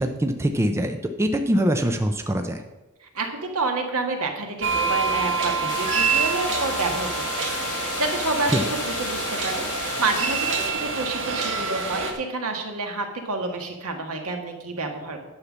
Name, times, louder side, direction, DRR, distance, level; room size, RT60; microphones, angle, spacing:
voice 1, 0.0-2.6 8.5-8.7, equal, 10° right, 6 dB, 0.5 m, -23 dB
voice 2, 3.0-15.2, right 3 dB, 75° right, 3 dB, 1.7 m, -29 dB
sound 1, 4.6-12.1, right 5 dB, 60° right, 1.6 m, -26 dB
sound 2, 5.7-10.7, left 7 dB, 85° left, 1.1 m, -34 dB
9.8 x 5.7 x 7.2 m, 1.1 s
head